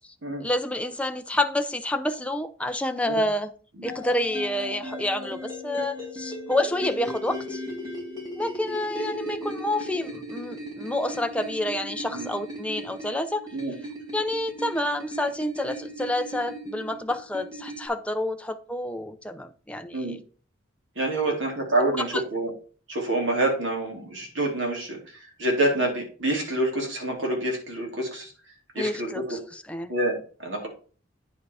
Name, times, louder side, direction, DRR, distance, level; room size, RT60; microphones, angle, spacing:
voice 1, 0.4-3.5 3.8-7.6 8.4-13.4 14.1-20.2 21.3-21.4 22.1-22.2 28.8-29.9, left 1 dB, 5° left, 0.6 m, -28 dB
sound 1, 3.8-17.9, equal, 20° right, 3.4 m, -37 dB
voice 2, 21.0-22.5 22.9-28.3 28.8-29.4 29.9-30.7, right 1 dB, 65° right, 3.5 m, -27 dB
9.5 x 5.1 x 4.8 m
head